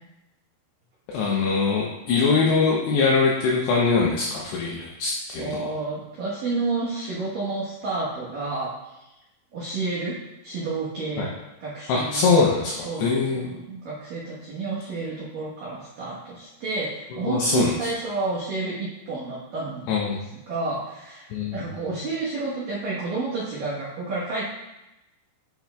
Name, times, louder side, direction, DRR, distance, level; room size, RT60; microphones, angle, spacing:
voice 1, 1.1-5.7 11.2-11.3 11.9-13.5 17.2-17.9 19.9-20.2 21.3-21.6, left 4 dB, 90° left, -3 dB, 2.4 m, -22 dB
voice 2, 5.4-8.7 9.5-10.2 10.4-11.3 11.6-12.3 12.8-19.9 20.5-24.5, right 3 dB, 85° right, -8 dB, 1.9 m, -30 dB
9.3 x 5.8 x 2.3 m, 0.95 s
omnidirectional pair, 5.8 m